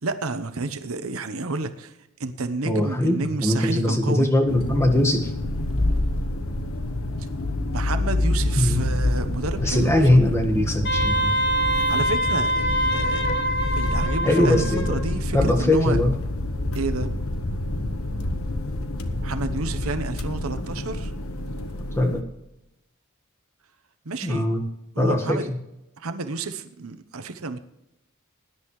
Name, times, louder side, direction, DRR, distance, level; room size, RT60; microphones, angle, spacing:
voice 1, 0.0-1.9 2.2-4.3 7.7-10.2 11.7-13.3 13.7-16.0 16.7-17.2 19.2-21.1 24.0-24.4 24.9-25.5 26.0-27.6, right 3 dB, 85° right, 8 dB, 1.0 m, -30 dB
voice 2, 2.6-5.3 8.6-8.8 9.6-11.3 14.2-15.0 15.3-16.2 21.9-22.2 24.2-24.6 25.0-25.6, left 1 dB, 15° left, 3 dB, 1.6 m, -21 dB
sound 1, 4.5-22.2, left 1 dB, 80° left, 1.1 m, -27 dB
Wind instrument woodwind instrument, 10.8-15.1, right 1 dB, 55° left, 1.9 m, -24 dB
20.0 x 10.5 x 3.2 m, 0.91 s
head